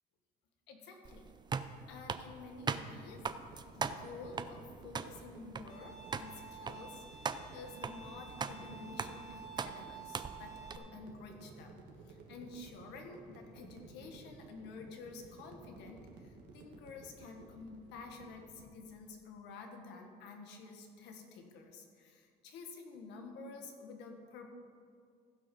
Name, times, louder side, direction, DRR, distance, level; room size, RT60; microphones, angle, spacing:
voice 1, 0.7-1.3 1.9-3.3 3.7-11.8 12.0-24.5, left 3 dB, 90° left, 3 dB, 1.6 m, -50 dB
sound 1, 1.0-10.8, right 5 dB, 25° right, 0.5 m, -41 dB
sound 2, 2.4-18.7, right 4 dB, 85° right, 1.6 m, -56 dB
Bowed string instrument, 5.7-10.8, right 5 dB, 40° left, 2.9 m, -51 dB
15.5 x 6.2 x 5.4 m, 2.2 s
cardioid pair, 110°, 17 cm